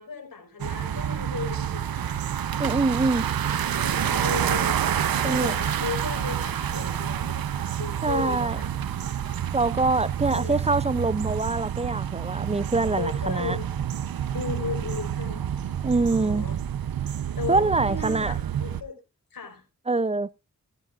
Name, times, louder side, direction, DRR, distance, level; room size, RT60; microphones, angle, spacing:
voice 1, 0.0-2.9 3.1-3.2 3.7-4.8 5.2-8.9 10.3-10.6 13.0-13.6 14.3-15.5 16.1-16.6 17.4-19.0 19.3-19.6, left 5 dB, 75° left, 4.8 m, -36 dB
sound 1, 0.6-18.8, right 9 dB, 80° right, 0.8 m, -28 dB
voice 2, 2.6-3.2 5.2-5.5 8.0-8.6 9.5-13.6 15.8-16.5 17.5-18.4 19.9-20.3, right 3 dB, 20° right, 0.5 m, -24 dB
17.0 x 10.0 x 2.5 m
cardioid pair, 40°, 35 cm